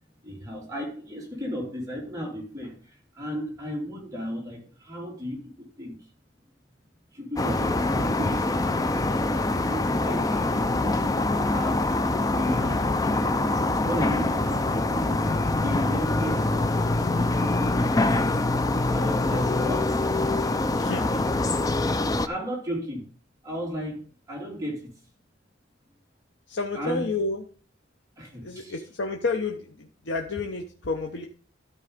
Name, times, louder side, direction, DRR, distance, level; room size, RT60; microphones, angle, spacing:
voice 1, 0.2-5.9 7.1-9.2 9.6-11.8 12.4-13.5 13.8-15.2 15.6-18.4 18.9-20.0 22.2-23.0 23.4-24.0 24.3-24.9 26.8-27.1 28.2-28.8, equal, 15° right, -2 dB, 2.6 m, -34 dB
sound 1, 7.4-22.3, left 2 dB, 20° left, 0.4 m, -24 dB
voice 2, 20.8-21.4 26.5-27.4 28.4-31.3, left 3 dB, 65° left, 2 dB, 0.9 m, -30 dB
12.5 x 4.7 x 5.1 m, 0.41 s
head